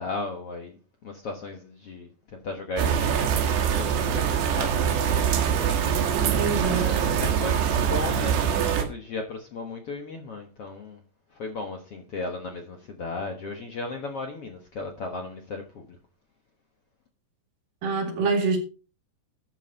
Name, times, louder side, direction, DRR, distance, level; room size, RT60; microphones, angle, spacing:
voice 1, 0.0-5.0 6.6-11.0 11.3-16.0, left 3 dB, 65° left, 1.4 m, -36 dB
sound 1, 2.8-8.8, right 8 dB, 80° right, 3.8 m, -24 dB
voice 2, 6.1-6.9 17.8-18.6, right 4 dB, 60° right, 3.7 m, -26 dB
13.0 x 8.0 x 4.1 m
omnidirectional pair, 4.7 m